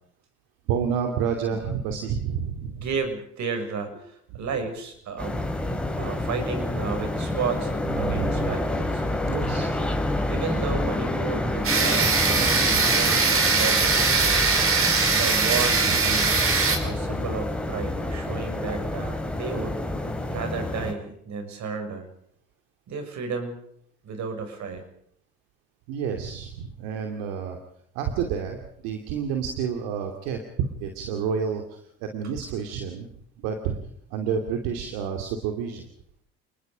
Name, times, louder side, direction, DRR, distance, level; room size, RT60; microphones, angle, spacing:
voice 1, 0.7-2.8 8.0-8.5 9.3-9.7 12.4-12.5 25.9-27.6 27.9-28.6 28.8-33.1 33.4-33.8 34.1-35.8, right 7 dB, 80° right, 4 dB, 2.7 m, -29 dB
voice 2, 2.8-5.4 6.0-9.0 10.3-14.5 15.1-16.4 16.8-19.8 20.3-22.1 22.9-23.6 24.0-24.8, right 5 dB, 55° right, 7 dB, 6.7 m, -33 dB
sound 1, 5.2-20.9, left 1 dB, 5° left, 5.1 m, -28 dB
sound 2, 11.6-16.8, right 4 dB, 40° right, 5.2 m, -21 dB
29.0 x 20.5 x 5.2 m, 0.68 s
hypercardioid pair, 70°, 33 cm